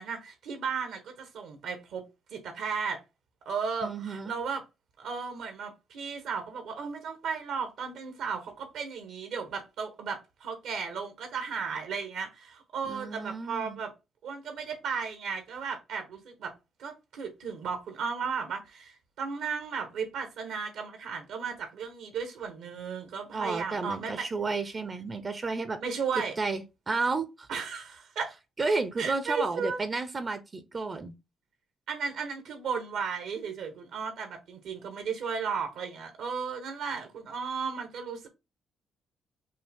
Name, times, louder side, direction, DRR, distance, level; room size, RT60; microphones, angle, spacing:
voice 1, 0.0-2.0 2.3-3.0 3.4-4.6 5.0-13.9 14.2-16.5 16.8-24.3 25.8-26.4 27.5-28.3 29.0-29.8 31.9-38.3, right 5 dB, 80° right, 1.1 m, -35 dB
voice 2, 3.8-4.3 12.9-13.8 23.3-25.8 26.4-27.5 28.6-31.1, right 3 dB, 35° right, 0.6 m, -32 dB
5.4 x 2.0 x 3.5 m
cardioid pair, 90°, 0 cm